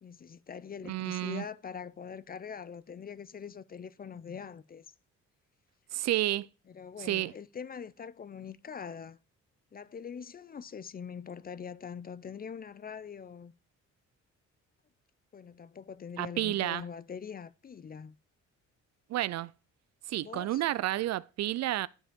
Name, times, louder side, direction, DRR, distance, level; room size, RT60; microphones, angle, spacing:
voice 1, 0.0-4.8 6.7-9.2 9.7-13.5 15.3-18.2 20.2-20.6, left 7 dB, 30° left, 0.5 m, -43 dB
voice 2, 0.8-1.4 5.9-6.5 7.0-7.3 16.2-16.8 19.1-19.5 20.1-21.9, right 14 dB, 60° right, 0.4 m, -30 dB
10.0 x 4.9 x 3.7 m
cardioid pair, 90°, 30 cm